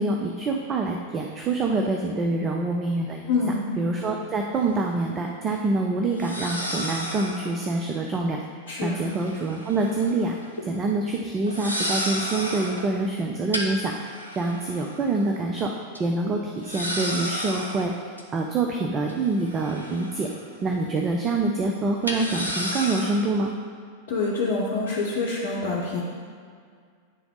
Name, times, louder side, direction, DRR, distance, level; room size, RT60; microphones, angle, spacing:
voice 1, 0.0-3.3 3.8-8.4 8.8-10.4 10.6-13.9 14.4-15.7 16.0-20.3 20.6-23.5, right 3 dB, 25° right, 1 dB, 0.5 m, -26 dB
voice 2, 3.3-3.6 8.7-9.0 24.1-26.0, left 3 dB, 50° left, -6 dB, 0.9 m, -26 dB
sound 1, 4.6-4.7 6.2-7.6 9.0-10.2 10.4-10.7 11.5-12.9 13.5-15.2 15.6-15.7 15.9-16.0 16.6-18.2 19.1-20.5 20.8-21.0 22.0-23.3, equal, 85° right, 0.7 m, -32 dB
9.0 x 3.5 x 3.8 m, 2.1 s
figure-of-eight pair, 90°, 0 cm